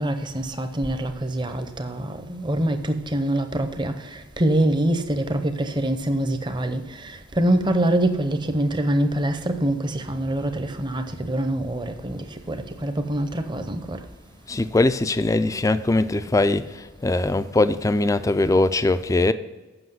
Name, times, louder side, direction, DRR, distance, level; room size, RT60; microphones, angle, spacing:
voice 1, 0.0-3.9 4.4-6.8 7.4-12.2 12.5-14.0, right 1 dB, 20° right, 0.7 m, -24 dB
voice 2, 14.5-19.3, left 2 dB, 15° left, 0.3 m, -21 dB
7.9 x 5.9 x 7.5 m
head